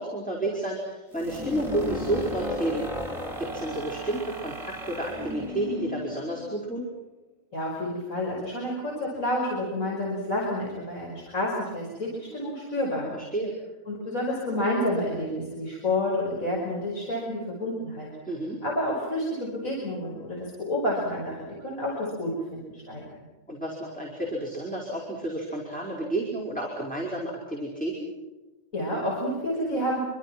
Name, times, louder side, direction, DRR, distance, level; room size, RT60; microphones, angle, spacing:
voice 1, 0.0-2.9 3.4-6.9 13.1-13.6 18.2-18.6 23.5-28.1, right 1 dB, 5° left, -3 dB, 4.8 m, -31 dB
sound 1, 1.1-6.8, left 1 dB, 25° right, 4.5 m, -34 dB
voice 2, 7.5-13.1 13.9-18.1 18.6-23.2 28.7-30.0, left 1 dB, 75° left, -3 dB, 5.9 m, -29 dB
26.0 x 26.0 x 6.0 m, 1.1 s
omnidirectional pair, 1.4 m